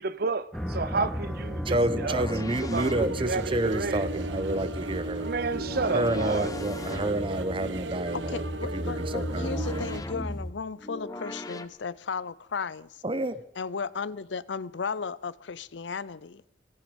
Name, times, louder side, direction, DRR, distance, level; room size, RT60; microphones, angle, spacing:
voice 1, 0.0-2.3 2.6-4.1 5.2-6.5, right 4 dB, 55° right, 0.7 m, -31 dB
sound 1, 0.5-10.5, equal, ahead, 1.5 m, -36 dB
voice 2, 1.6-5.3 5.9-8.4 8.7-9.6 13.0-13.4, right 1 dB, 30° right, 0.9 m, -29 dB
sound 2, 1.8-3.5 5.4-7.5 9.2-11.7, left 1 dB, 20° left, 0.8 m, -39 dB
sound 3, 2.7-10.0, right 2 dB, 80° right, 1.0 m, -36 dB
voice 3, 8.1-12.9 13.6-16.4, left 5 dB, 85° left, 0.6 m, -35 dB
17.0 x 15.5 x 5.2 m
head